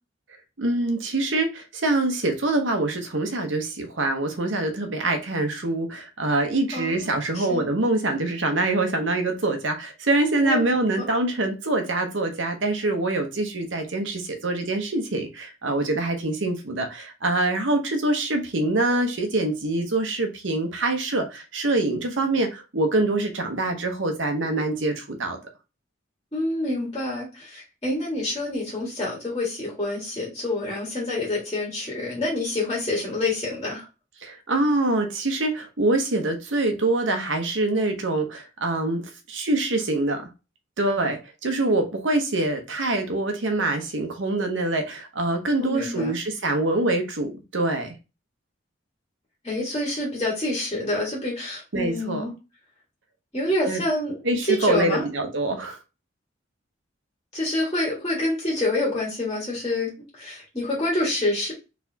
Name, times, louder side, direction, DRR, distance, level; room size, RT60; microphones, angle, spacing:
voice 1, 0.6-25.4 34.2-39.0 39.3-40.3 40.8-47.9 51.7-52.2 53.6-53.8 54.2-55.8, right 2 dB, 85° right, 1.0 m, -25 dB
voice 2, 6.7-7.7 10.4-10.6 11.0-11.1 26.3-33.9 45.6-46.2 49.4-52.3 53.3-54.2 54.4-55.0 57.3-59.9 60.2-61.5, left 1 dB, 25° left, 1.8 m, -27 dB
4.2 x 3.4 x 2.8 m
head